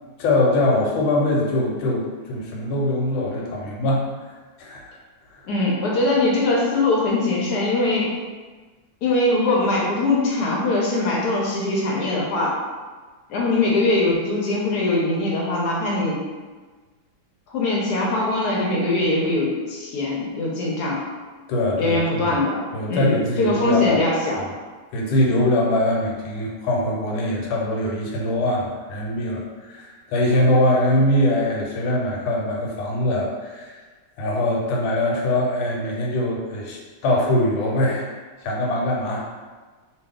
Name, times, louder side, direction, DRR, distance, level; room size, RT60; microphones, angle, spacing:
voice 1, 0.0-4.0 4.6-4.9 21.5-22.3 22.7-24.0 24.4-24.5 24.9-33.8 34.2-38.1 38.4-39.3, left 1 dB, 85° left, -2 dB, 1.5 m, -22 dB
voice 2, 5.5-8.1 9.0-12.6 13.3-16.2 17.5-21.0 21.8-22.6 22.9-23.1 23.4-24.4, left 2 dB, 70° left, -4 dB, 1.0 m, -21 dB
3.1 x 2.4 x 3.5 m, 1.4 s
omnidirectional pair, 2.2 m